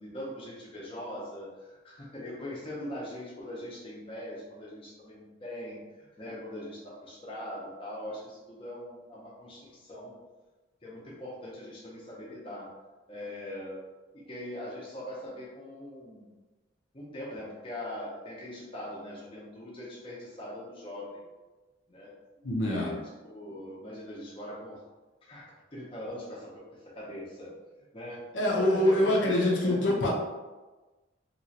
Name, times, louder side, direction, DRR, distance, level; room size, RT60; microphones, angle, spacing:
voice 1, 0.0-10.1 10.8-12.7 13.1-13.8 14.1-16.3 16.9-21.2 21.9-22.1 22.6-24.8 25.2-27.5 27.9-28.2 28.5-29.8, left 1 dB, 25° left, -5 dB, 0.7 m, -41 dB
voice 2, 22.4-22.9 28.3-30.1, left 1 dB, 70° left, -3 dB, 0.7 m, -25 dB
3.0 x 3.0 x 2.8 m, 1.2 s
head